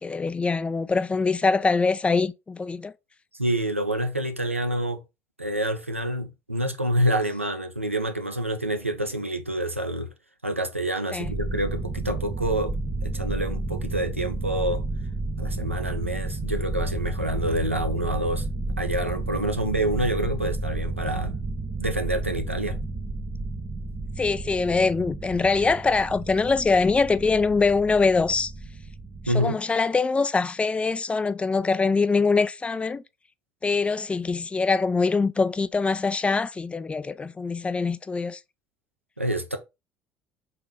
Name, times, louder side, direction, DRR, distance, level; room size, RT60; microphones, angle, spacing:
voice 1, 0.0-2.9 11.1-11.3 24.2-28.5 29.3-33.0 33.6-38.4, left 4 dB, 15° left, 0.3 m, -23 dB
voice 2, 3.4-5.0 5.4-10.1 10.4-12.7 13.0-14.8 15.4-18.5 18.8-21.4 21.8-22.8 29.3-29.6 39.2-39.6, right 1 dB, 90° right, 0.4 m, -27 dB
sound 1, 11.2-29.5, right 3 dB, 35° right, 0.9 m, -32 dB
3.8 x 3.0 x 3.5 m
figure-of-eight pair, 55°, 7 cm